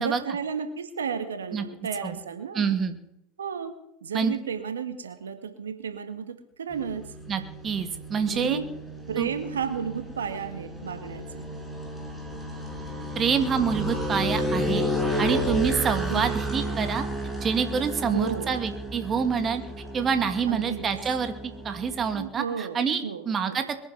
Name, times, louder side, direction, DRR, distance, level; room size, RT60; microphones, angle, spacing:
voice 1, 0.0-2.7 3.4-7.0 8.3-8.7 9.1-11.5 16.1-16.3 18.0-18.6 20.5-20.8 22.1-23.6, right 6 dB, 85° right, 8 dB, 1.7 m, -33 dB
voice 2, 2.5-3.0 4.1-4.3 7.3-8.6 9.2-9.3 13.2-14.8 15.2-17.1 17.4-19.6 19.9-21.3 21.6-23.8, right 6 dB, 30° right, 8 dB, 2.4 m, -27 dB
sound 1, 6.7-22.3, equal, ahead, 5.7 m, -32 dB
22.0 x 10.5 x 5.9 m, 0.78 s
hypercardioid pair, 85°, 0 cm